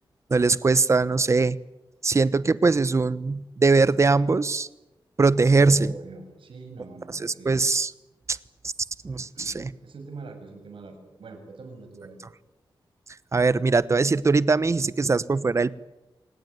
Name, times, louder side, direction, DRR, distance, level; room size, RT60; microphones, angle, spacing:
voice 1, 0.3-1.6 2.0-4.7 5.2-5.9 7.2-7.9 8.3-8.4 8.6-8.7 9.0-9.7 13.3-15.7, right 3 dB, 35° right, 17 dB, 1.0 m, -21 dB
voice 2, 5.5-7.6 8.3-8.4 9.1-12.2, right 3 dB, 80° right, 5 dB, 7.0 m, -43 dB
27.5 x 19.0 x 9.5 m, 0.96 s
wide cardioid pair, 110°, 9 cm